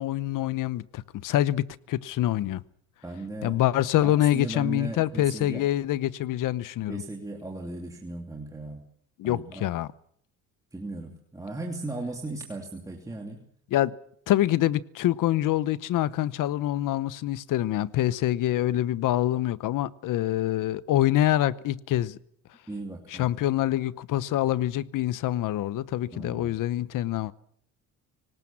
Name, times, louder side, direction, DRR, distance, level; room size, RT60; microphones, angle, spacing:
voice 1, 0.0-2.6 3.4-7.0 9.2-9.9 13.7-13.9 14.3-22.2 23.1-27.3, left 13 dB, 65° left, 0.9 m, -26 dB
voice 2, 3.0-3.6 4.0-5.6 6.9-8.8 9.2-9.6 10.7-13.4 22.7-23.3 26.1-26.6, right 2 dB, 10° right, 2.8 m, -37 dB
25.0 x 19.0 x 7.3 m
cardioid pair, 135°, 34 cm